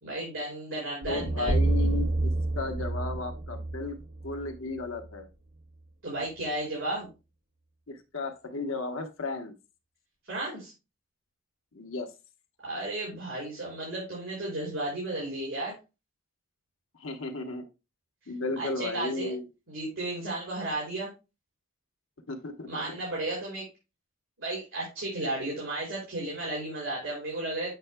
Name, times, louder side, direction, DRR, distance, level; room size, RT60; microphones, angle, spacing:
voice 1, 0.0-1.5 6.0-7.1 10.3-10.7 12.6-15.7 18.6-19.3 19.7-21.1 22.7-23.7 24.4-27.8, right 2 dB, 70° right, -6 dB, 4.2 m, -33 dB
sound 1, 1.0-5.2, right 2 dB, 40° right, 1.5 m, -29 dB
voice 2, 1.1-4.0 4.2-5.3 7.9-9.5 11.7-12.1 17.0-17.6 18.3-19.5 22.3-22.8, left 3 dB, 75° left, 4 dB, 1.0 m, -34 dB
7.9 x 6.5 x 2.2 m, 0.28 s
head